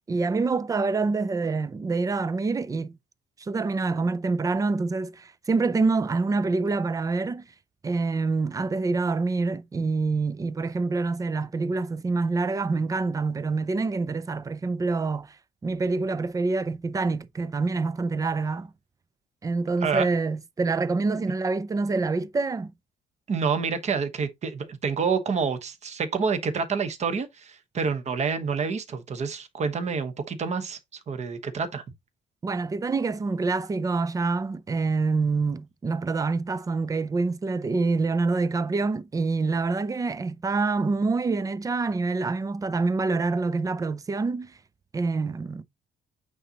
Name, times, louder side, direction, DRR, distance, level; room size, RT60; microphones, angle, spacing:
voice 1, 0.1-2.9 3.4-7.4 7.8-15.4 15.6-18.7 19.4-22.7 32.4-44.5 44.9-45.6, right 3 dB, 20° right, 0.4 m, -26 dB
voice 2, 23.3-30.8 31.1-31.8, right 5 dB, 35° right, 1.1 m, -28 dB
8.8 x 4.0 x 2.9 m
cardioid pair, 170°, 19 cm